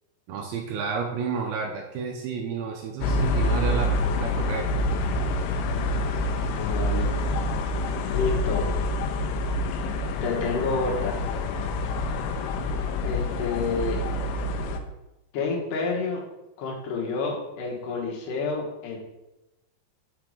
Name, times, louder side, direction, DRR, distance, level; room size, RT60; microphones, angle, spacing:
voice 1, 0.3-4.7, right 6 dB, 90° right, 1 dB, 2.2 m, -31 dB
sound 1, 3.0-14.8, left 2 dB, 80° left, 2.7 m, -27 dB
voice 2, 6.6-7.1 7.3-7.5 8.1-8.6 10.2-11.2 13.0-14.0 15.3-16.2 16.6-19.0, left 4 dB, 65° left, -2 dB, 2.4 m, -29 dB
6.0 x 5.8 x 4.8 m, 0.97 s
omnidirectional pair, 5.1 m